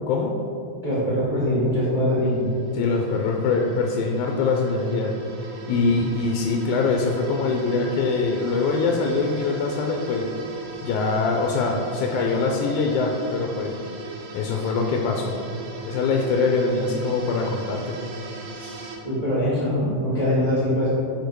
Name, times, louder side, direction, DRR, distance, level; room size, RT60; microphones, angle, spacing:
voice 1, 0.8-2.5 5.7-5.9 18.5-20.9, equal, 55° right, -8 dB, 0.4 m, -23 dB
sound 1, 1.3-19.0, right 4 dB, 70° right, 2.1 m, -39 dB
voice 2, 2.7-5.1 5.5-10.3 10.8-13.8 14.3-15.4 15.8-18.0, left 4 dB, 80° left, 1 dB, 1.8 m, -23 dB
6.8 x 5.0 x 4.6 m, 2.6 s
omnidirectional pair, 4.0 m